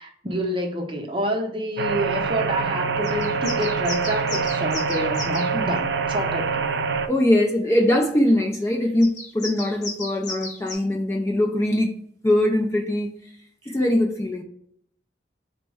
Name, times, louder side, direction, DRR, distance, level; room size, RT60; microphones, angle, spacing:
voice 1, 0.0-6.6 13.6-13.7, equal, 25° right, 2 dB, 0.6 m, -28 dB
sound 1, 1.8-7.1, right 5 dB, 65° right, 0.3 m, -25 dB
sound 2, 3.0-5.5 9.0-10.7, left 2 dB, 45° left, 1.0 m, -35 dB
voice 2, 7.1-12.0 12.2-13.1 13.7-14.4, left 1 dB, 15° left, 2 dB, 0.3 m, -21 dB
4.3 x 2.1 x 4.6 m, 0.69 s
head